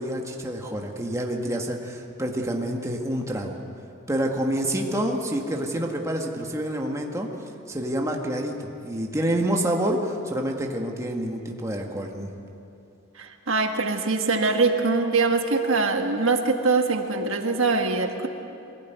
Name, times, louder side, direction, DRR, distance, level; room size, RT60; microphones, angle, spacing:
voice 1, 0.0-3.6 4.1-7.3 7.7-12.3, right 1 dB, 15° right, 1 dB, 1.8 m, -28 dB
voice 2, 13.2-18.3, right 3 dB, 65° right, 4 dB, 1.6 m, -23 dB
22.5 x 17.0 x 9.4 m, 2.7 s
head